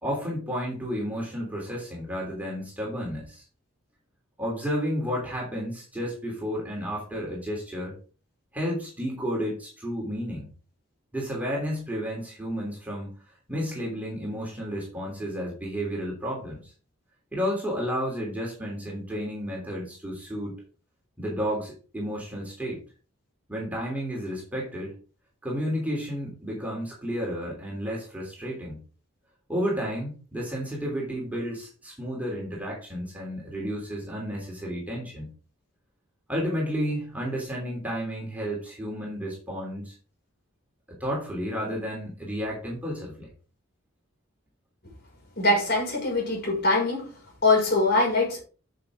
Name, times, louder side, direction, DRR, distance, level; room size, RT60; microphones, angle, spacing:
voice 1, 0.0-3.4 4.4-7.9 8.5-10.5 11.1-13.2 13.5-16.6 17.3-20.6 21.2-22.8 23.5-24.9 25.4-28.8 29.5-35.3 36.3-39.9 40.9-43.3, equal, 5° right, 3.2 m, -32 dB
voice 2, 45.4-47.1 47.4-48.4, left 2 dB, 50° left, 5.4 m, -23 dB
9.6 x 6.6 x 3.6 m
head